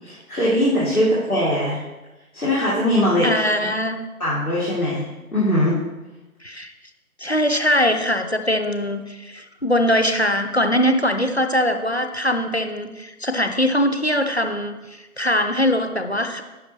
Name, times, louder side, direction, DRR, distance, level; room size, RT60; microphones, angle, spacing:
voice 1, 0.0-1.8 2.3-3.4 4.2-5.0 5.3-5.8, left 1 dB, 70° left, -8 dB, 2.3 m, -20 dB
voice 2, 3.2-4.0 6.4-6.7 7.2-16.4, equal, 45° left, 7 dB, 0.6 m, -21 dB
10.5 x 5.6 x 3.3 m, 1.1 s
figure-of-eight pair, 175°, 45 cm